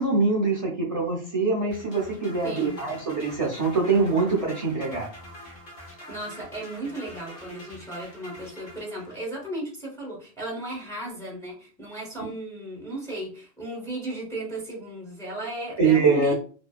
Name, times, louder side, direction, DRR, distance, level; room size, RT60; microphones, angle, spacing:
voice 1, 0.0-5.1 15.8-16.3, right 4 dB, 45° right, -3 dB, 0.5 m, -24 dB
sound 1, 1.7-9.4, equal, 65° left, 1.0 m, -45 dB
voice 2, 2.4-2.8 6.1-16.3, right 1 dB, 5° left, -3 dB, 0.7 m, -35 dB
2.6 x 2.2 x 2.3 m, 0.40 s
omnidirectional pair, 1.1 m